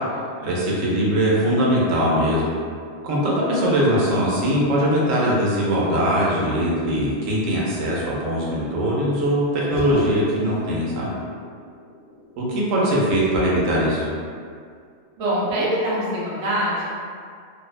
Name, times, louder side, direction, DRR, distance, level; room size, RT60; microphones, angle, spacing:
voice 1, 0.4-2.4 3.0-11.1 12.4-14.0, equal, 80° right, -5 dB, 1.0 m, -21 dB
sound 1, 9.8-14.5, left 1 dB, 65° left, 0.5 m, -37 dB
voice 2, 15.2-16.9, right 1 dB, 45° right, -8 dB, 0.4 m, -23 dB
2.6 x 2.0 x 2.3 m, 2.2 s
omnidirectional pair, 1.3 m